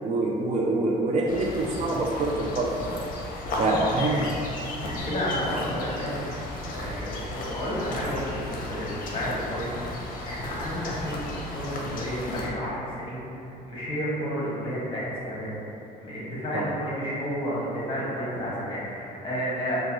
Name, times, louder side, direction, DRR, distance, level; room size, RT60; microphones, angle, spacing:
voice 1, 0.0-2.8 3.6-4.2 16.5-16.6, right 2 dB, 45° right, -1 dB, 0.4 m, -25 dB
sound 1, 1.3-12.5, left 2 dB, 55° left, 0.7 m, -35 dB
voice 2, 3.6-4.2 4.8-6.4 6.7-9.7 9.9-13.3 13.7-15.5 16.0-19.8, equal, 30° left, -7 dB, 1.4 m, -31 dB
5.1 x 2.3 x 3.0 m, 2.9 s
cardioid pair, 110°, 17 cm